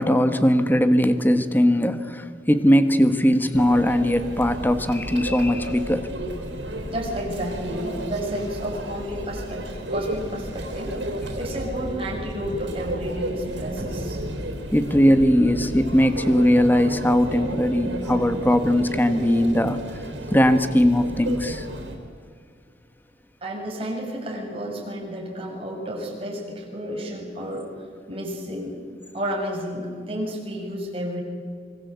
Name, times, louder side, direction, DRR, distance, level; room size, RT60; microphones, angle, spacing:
voice 1, 0.0-6.1 14.7-19.8 20.3-21.7, equal, 10° left, 10 dB, 1.3 m, -19 dB
Conversation / Chatter / Crowd, 3.5-22.0, right 1 dB, 85° right, 4.1 m, -32 dB
voice 2, 6.9-11.0 11.3-14.2 23.4-27.7 28.1-28.8 29.1-31.2, equal, 35° right, -1 dB, 6.9 m, -31 dB
25.5 x 23.5 x 8.3 m, 2.1 s
head